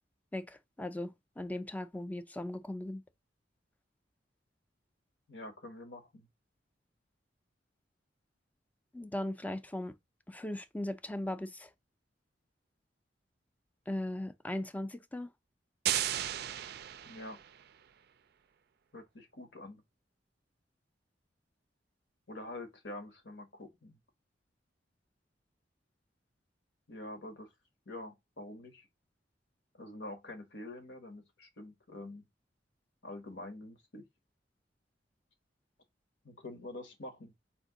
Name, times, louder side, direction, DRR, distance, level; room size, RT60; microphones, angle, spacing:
voice 1, 0.3-3.0 8.9-10.0 10.3-11.7 13.9-15.3, left 1 dB, 10° left, 0.4 m, -38 dB
voice 2, 5.3-6.3 17.0-17.4 18.9-19.8 22.3-24.0 26.9-27.5 27.8-28.9 29.7-32.3 33.0-34.0 36.2-37.3, left 1 dB, 75° left, 1.4 m, -46 dB
sound 1, 15.9-17.7, right 11 dB, 60° right, 0.4 m, -35 dB
4.4 x 2.7 x 3.9 m
head